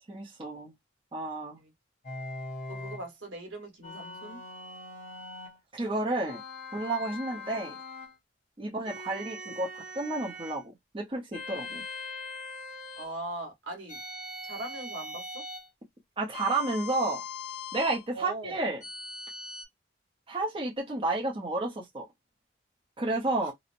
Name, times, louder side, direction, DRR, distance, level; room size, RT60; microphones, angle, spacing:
voice 1, 0.1-0.7 1.1-1.6 5.7-6.4 6.7-7.7 8.6-9.7 9.9-11.8 16.2-17.2 17.7-18.8 20.3-22.1 23.0-23.5, right 2 dB, 30° right, 0.7 m, -31 dB
sound 1, 2.0-3.1 3.8-5.6 6.3-8.1 8.8-10.6 11.3-13.1 13.9-15.7 16.3-18.1 18.8-19.6, left 2 dB, 40° left, 0.9 m, -41 dB
voice 2, 2.7-4.4 13.0-14.0 14.4-15.4 18.1-18.5 23.4-23.5, right 2 dB, 75° right, 1.2 m, -40 dB
3.0 x 2.1 x 2.5 m
head